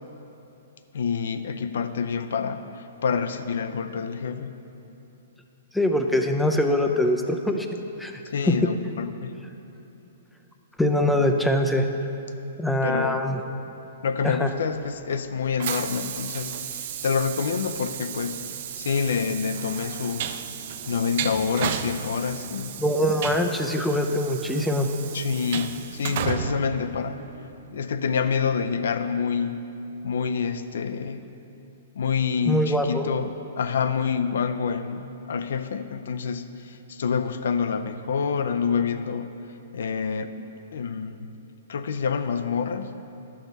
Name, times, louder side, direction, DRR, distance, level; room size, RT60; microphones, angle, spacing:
voice 1, 0.9-4.5 8.3-9.3 12.8-13.3 14.0-20.4 20.9-22.8 25.1-27.2 27.7-29.6 30.0-31.2 32.0-39.3 39.7-41.3 41.7-43.0, left 6 dB, 75° left, 10 dB, 0.5 m, -27 dB
voice 2, 5.7-7.7 8.0-8.2 8.5-8.6 10.8-11.9 12.6-13.4 14.2-14.5 22.8-24.9 32.5-33.1, left 1 dB, 5° left, 4 dB, 0.5 m, -23 dB
Train, 14.5-27.6, right 9 dB, 50° right, 0.4 m, -34 dB
11.5 x 6.4 x 4.0 m, 3.0 s
hypercardioid pair, 150°, 0 cm